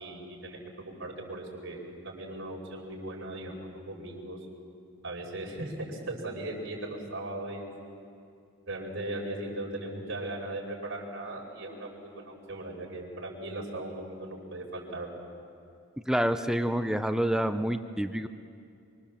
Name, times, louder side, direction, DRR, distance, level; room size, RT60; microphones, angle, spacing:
voice 1, 0.0-4.4 5.0-7.6 8.7-15.2, right 1 dB, 60° right, -1 dB, 5.4 m, -38 dB
voice 2, 16.1-18.3, equal, 5° right, 8 dB, 0.6 m, -27 dB
25.5 x 25.0 x 7.3 m, 2.4 s
head